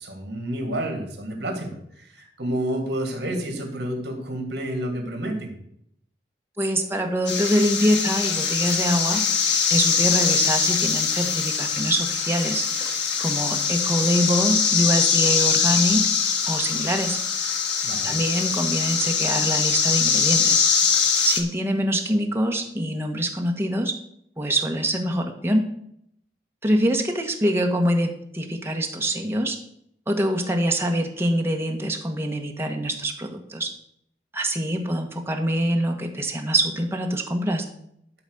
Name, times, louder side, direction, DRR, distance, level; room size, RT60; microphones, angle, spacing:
voice 1, 0.0-5.5 17.8-18.2, right 1 dB, 65° right, 2 dB, 2.8 m, -30 dB
voice 2, 6.6-9.4 9.7-17.2 18.0-20.6 21.2-23.9 24.4-25.7 26.6-29.6 30.1-33.7 34.3-37.6, equal, 15° right, 2 dB, 1.2 m, -24 dB
sound 1, 7.3-21.4, left 6 dB, 85° left, 1.5 m, -22 dB
12.0 x 4.1 x 6.6 m, 0.72 s
head